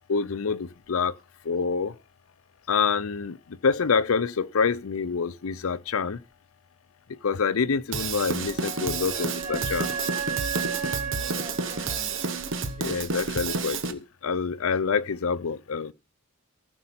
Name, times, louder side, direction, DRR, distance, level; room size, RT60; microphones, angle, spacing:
voice 1, 0.1-1.1 1.5-1.9 2.7-3.4 3.6-6.2 7.1-9.9 12.8-15.9, left 5 dB, 75° left, 0.6 m, -26 dB
Drum kit / Drum, 7.9-13.9, right 4 dB, 60° right, 1.0 m, -30 dB
voice 2, 8.2-12.2, equal, 25° right, 1.7 m, -44 dB
Wind instrument woodwind instrument, 8.4-13.0, right 6 dB, 5° right, 3.4 m, -35 dB
15.0 x 5.3 x 5.7 m
head